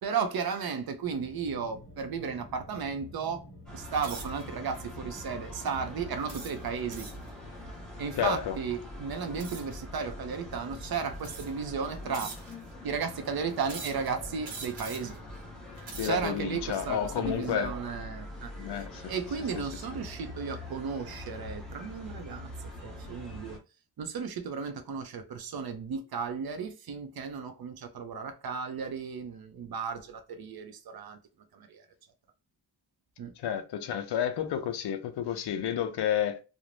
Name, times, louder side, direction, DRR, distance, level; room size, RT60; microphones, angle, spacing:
voice 1, 0.0-3.4 3.7-7.1 8.0-12.3 12.8-15.2 16.0-22.5 22.8-23.6 24.0-31.2 31.5-31.8 33.2-33.3, right 6 dB, 55° right, 0.5 m, -34 dB
sound 1, 1.0-6.2, left 1 dB, 30° left, 1.0 m, -49 dB
sound 2, 3.7-23.6, left 1 dB, ahead, 0.7 m, -44 dB
sound 3, 4.0-4.4 5.1-5.3 6.3-7.3 9.4-9.8 10.6-10.7 11.2-11.7 12.1-12.7 13.6-14.1 14.4-15.2 15.7-16.3, right 4 dB, 80° right, 1.0 m, -43 dB
voice 2, 8.2-8.6 16.0-17.7 18.6-19.1 33.4-36.4, left 9 dB, 65° left, 0.5 m, -31 dB
2.5 x 2.0 x 3.0 m
wide cardioid pair, 160°, 45 cm